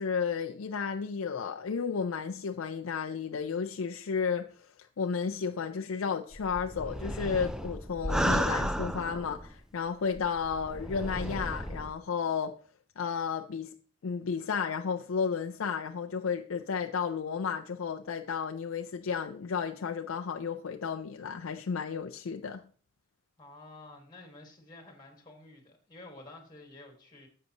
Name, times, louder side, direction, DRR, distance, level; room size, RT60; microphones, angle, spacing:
voice 1, 0.0-4.7 5.0-12.5 13.0-13.7 14.0-22.6, left 6 dB, 80° left, 0.5 m, -33 dB
sound 1, 6.3-9.5 10.2-11.9, equal, 5° right, 0.4 m, -33 dB
voice 2, 23.4-27.3, left 2 dB, 20° left, 1.7 m, -50 dB
10.5 x 7.6 x 2.9 m
head